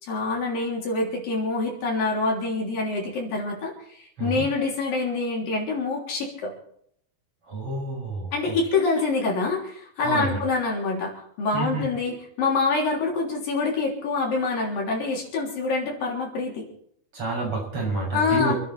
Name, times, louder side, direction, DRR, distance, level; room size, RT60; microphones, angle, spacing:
voice 1, 0.0-6.5 8.3-16.7 18.1-18.5, left 3 dB, 65° left, -2 dB, 5.1 m, -26 dB
voice 2, 7.5-8.6 10.0-10.5 11.5-12.1 17.1-18.5, right 2 dB, 40° right, -2 dB, 7.8 m, -29 dB
28.0 x 9.8 x 4.3 m, 0.68 s
omnidirectional pair, 4.3 m